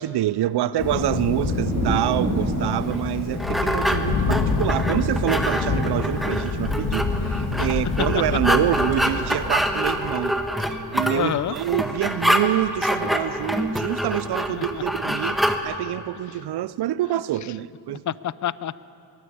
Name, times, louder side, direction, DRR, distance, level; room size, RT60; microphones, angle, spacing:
voice 1, 0.0-18.0, right 13 dB, 75° right, 0.6 m, -26 dB
Thunder, 0.8-10.4, left 4 dB, 70° left, 2.9 m, -27 dB
Thunder 2, 1.5-11.1 11.4-12.1, right 2 dB, 40° right, 4.0 m, -33 dB
sound 1, 2.9-15.6, equal, ahead, 1.6 m, -26 dB
voice 2, 11.1-11.6 14.5-14.8 17.9-18.8, left 10 dB, 45° left, 0.6 m, -28 dB
22.0 x 16.5 x 8.5 m
cardioid pair, 85°, 39 cm